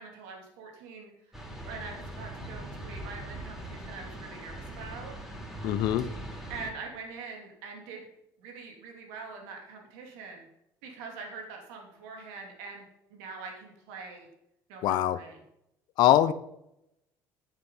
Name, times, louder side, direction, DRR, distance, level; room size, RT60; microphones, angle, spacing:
voice 1, 0.0-1.4 1.6-5.1 6.5-8.0 8.4-10.5 10.8-14.3 14.7-15.4, right 4 dB, 85° right, 2.9 m, -44 dB
sound 1, 1.3-6.7, right 1 dB, 5° right, 3.6 m, -41 dB
voice 2, 5.6-6.1 14.8-15.2 16.0-16.3, left 12 dB, 70° left, 0.8 m, -23 dB
9.5 x 9.3 x 5.6 m
supercardioid pair, 95°, 8 cm